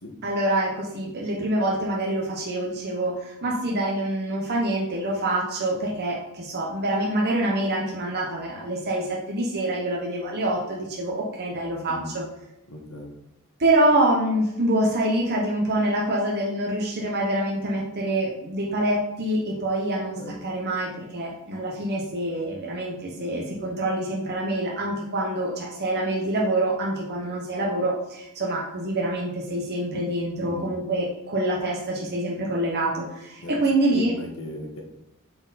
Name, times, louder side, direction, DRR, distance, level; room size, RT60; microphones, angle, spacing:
voice 1, 0.2-12.2 13.6-34.1, right 1 dB, 50° right, -3 dB, 1.0 m, -26 dB
voice 2, 11.8-12.1 12.7-13.1 20.2-20.3 30.4-30.7 33.4-33.5 33.9-34.8, left 1 dB, 80° left, 2 dB, 1.5 m, -37 dB
7.6 x 4.3 x 4.1 m, 0.88 s
head